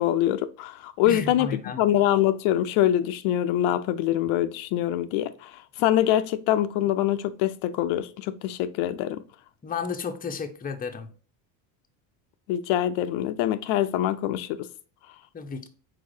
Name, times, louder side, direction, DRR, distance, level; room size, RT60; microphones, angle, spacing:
voice 1, 0.0-9.2 12.5-14.6, left 12 dB, 70° left, 0.6 m, -24 dB
voice 2, 1.1-1.8 9.6-11.1 15.3-15.7, left 5 dB, 20° left, 0.7 m, -32 dB
4.7 x 4.1 x 2.6 m
cardioid pair, 110°, 48 cm